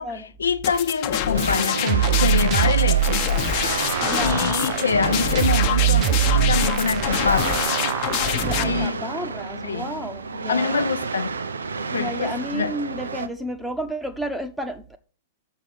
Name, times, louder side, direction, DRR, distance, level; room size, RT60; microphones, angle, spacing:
voice 1, 0.0-3.2 4.2-7.6 8.6-9.1 9.6-9.9 10.5-11.3 11.9-12.7, left 5 dB, 80° left, 0.7 m, -25 dB
sound 1, 0.6-8.6, left 11 dB, 45° left, 0.9 m, -26 dB
sound 2, 1.3-13.3, right 4 dB, 80° right, 0.7 m, -30 dB
sound 3, 1.9-8.9, right 14 dB, 40° right, 0.5 m, -24 dB
voice 2, 4.0-4.7 8.4-10.8 11.9-15.0, equal, 5° right, 1.1 m, -32 dB
6.6 x 5.6 x 6.3 m
figure-of-eight pair, 105°, 0 cm